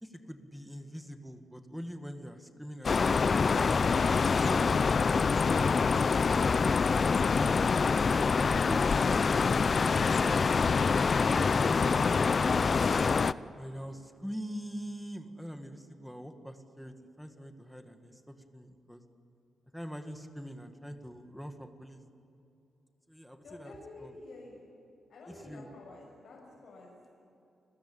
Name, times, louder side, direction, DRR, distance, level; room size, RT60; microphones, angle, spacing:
voice 1, 0.0-3.7 4.4-5.5 7.4-7.7 7.9-8.9 10.1-10.8 11.2-12.7 13.6-19.0 19.7-22.0 23.1-23.7 24.0-24.1 25.3-25.7, equal, ahead, 6 dB, 1.8 m, -43 dB
sound 1, 2.8-13.3, left 5 dB, 35° left, 0.5 m, -25 dB
voice 2, 23.4-24.6 25.1-27.2, left 2 dB, 65° left, -3 dB, 6.5 m, -50 dB
30.0 x 20.5 x 8.8 m, 2.8 s
wide cardioid pair, 140°, 0 cm